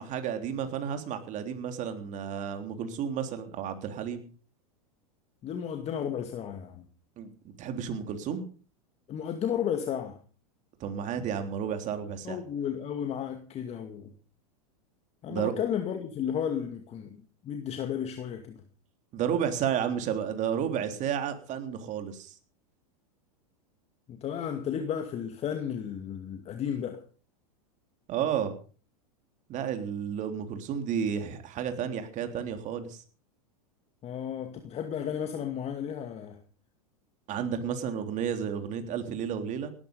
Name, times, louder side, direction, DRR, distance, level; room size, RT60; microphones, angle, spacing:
voice 1, 0.0-4.2 7.2-7.3 7.6-8.4 10.8-12.4 15.3-15.5 19.1-22.3 28.1-28.6 29.5-33.0 37.3-39.7, right 8 dB, 40° right, 7 dB, 3.5 m, -32 dB
voice 2, 5.4-6.9 9.1-10.2 12.2-14.1 15.2-18.6 24.1-27.0 34.0-36.4, left 8 dB, 35° left, 6 dB, 2.2 m, -33 dB
18.0 x 13.5 x 5.4 m, 0.40 s
hypercardioid pair, 110°, 19 cm